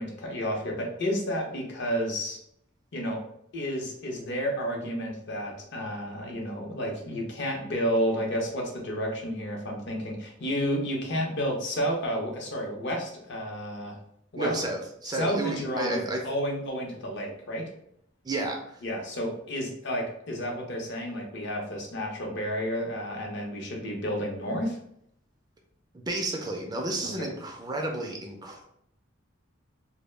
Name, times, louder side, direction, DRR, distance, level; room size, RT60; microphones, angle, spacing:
voice 1, 0.0-2.4 2.9-3.2 3.5-14.0 14.3-14.6 15.0-17.7 18.8-24.8 27.2-27.3, equal, 60° left, 1 dB, 0.6 m, -31 dB
voice 2, 14.4-16.2 18.2-18.6 25.9-28.6, right 2 dB, 20° right, 2 dB, 0.3 m, -31 dB
2.1 x 2.0 x 3.1 m, 0.71 s
head